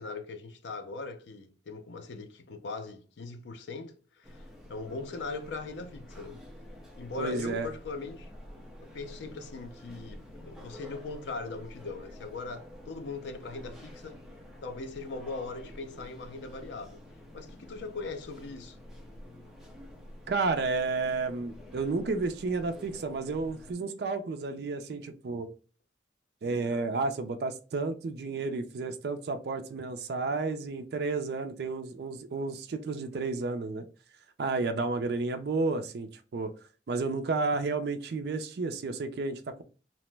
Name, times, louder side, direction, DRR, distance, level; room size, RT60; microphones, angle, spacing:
voice 1, 0.0-6.4 7.0-8.3 8.8-14.2 14.6-17.0 17.3-18.8, left 3 dB, 75° left, 0.5 m, -40 dB
sound 1, 4.2-23.7, left 1 dB, 5° right, 0.5 m, -49 dB
voice 2, 7.2-7.7 20.3-25.5 26.4-33.9 34.4-36.5 36.9-39.6, right 3 dB, 60° right, 0.4 m, -31 dB
2.9 x 2.0 x 3.2 m
head